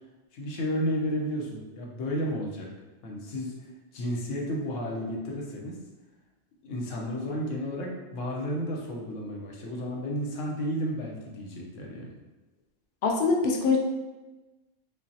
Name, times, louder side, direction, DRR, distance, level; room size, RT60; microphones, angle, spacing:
voice 1, 0.3-2.7 3.0-5.8 6.6-12.1, equal, 80° left, -1 dB, 1.1 m, -32 dB
voice 2, 13.0-13.8, left 4 dB, 60° left, 1 dB, 0.6 m, -23 dB
5.4 x 2.0 x 2.7 m, 1.1 s
omnidirectional pair, 1.3 m